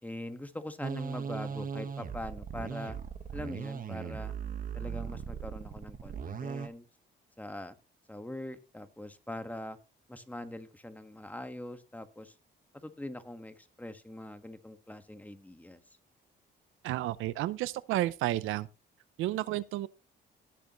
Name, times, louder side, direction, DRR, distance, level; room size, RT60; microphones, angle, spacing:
voice 1, 0.0-3.0 3.3-4.3 4.7-6.8 7.4-7.7 8.1-9.8 10.1-12.3 12.7-15.8, left 1 dB, 10° left, 1.5 m, -42 dB
sound 1, 0.8-6.7, right 7 dB, 45° right, 1.3 m, -38 dB
voice 2, 16.8-18.7 19.2-19.9, right 15 dB, 90° right, 0.6 m, -31 dB
17.5 x 6.8 x 3.0 m
cardioid pair, 90°, 20 cm